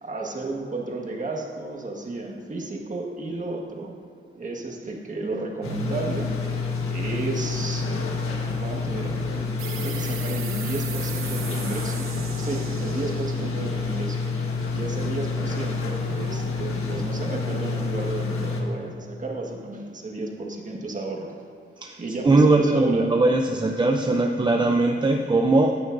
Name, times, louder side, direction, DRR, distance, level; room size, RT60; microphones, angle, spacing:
voice 1, 0.0-4.0 4.3-6.3 6.9-7.8 8.6-9.2 9.8-12.0 12.4-14.3 14.7-21.3 22.0-23.1, right 2 dB, 35° right, 0 dB, 1.6 m, -33 dB
sound 1, 5.6-18.6, left 4 dB, 85° left, 1.4 m, -28 dB
sound 2, 9.6-14.9, right 8 dB, 80° right, 0.8 m, -39 dB
voice 2, 22.2-25.8, right 2 dB, 20° right, 3 dB, 0.5 m, -20 dB
15.5 x 9.4 x 2.6 m, 2.4 s
wide cardioid pair, 120°, 21 cm